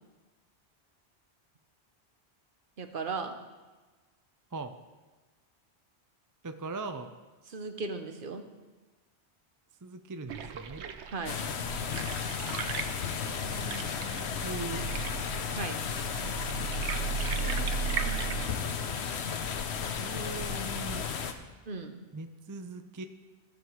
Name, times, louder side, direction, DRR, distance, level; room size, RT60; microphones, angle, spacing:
voice 1, 2.8-3.3 7.5-8.4 11.1-11.4 15.5-15.8 21.7-22.0, right 4 dB, 55° right, 6 dB, 1.1 m, -36 dB
voice 2, 6.4-7.1 9.8-10.8 13.1-14.9 17.3-18.5 20.0-21.1 22.1-23.0, right 3 dB, 25° right, 8 dB, 0.4 m, -41 dB
sound 1, 10.3-18.5, right 6 dB, 90° right, 1.0 m, -36 dB
sound 2, 11.3-21.3, left 7 dB, 75° left, 1.0 m, -34 dB
15.0 x 6.8 x 4.6 m, 1.3 s
omnidirectional pair, 1.1 m